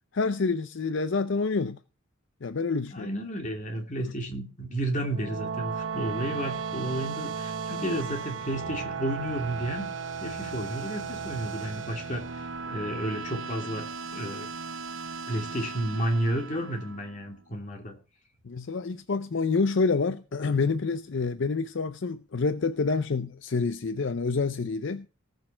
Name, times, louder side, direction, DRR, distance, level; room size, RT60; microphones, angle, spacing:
voice 1, 0.1-1.8 2.4-3.1 4.0-4.1 18.4-25.1, left 4 dB, 60° left, 0.5 m, -27 dB
voice 2, 2.9-9.9 10.2-14.5 15.3-18.0, right 1 dB, 40° left, 2.7 m, -32 dB
sound 1, 5.0-17.3, right 5 dB, 65° right, 0.9 m, -36 dB
18.5 x 6.5 x 4.4 m
head